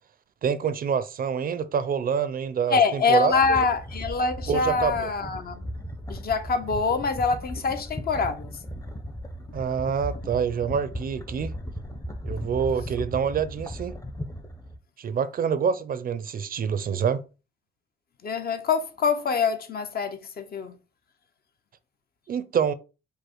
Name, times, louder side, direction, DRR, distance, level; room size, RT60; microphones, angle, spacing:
voice 1, 0.4-3.6 4.5-5.1 9.5-11.5 12.2-14.0 15.0-17.2 22.3-22.7, right 7 dB, 45° right, 0.5 m, -26 dB
voice 2, 2.7-5.7 6.1-8.5 18.2-20.7, left 4 dB, 50° left, 0.8 m, -25 dB
sound 1, 3.2-14.8, equal, 15° left, 0.8 m, -37 dB
5.0 x 2.1 x 4.5 m
cardioid pair, 90°, 20 cm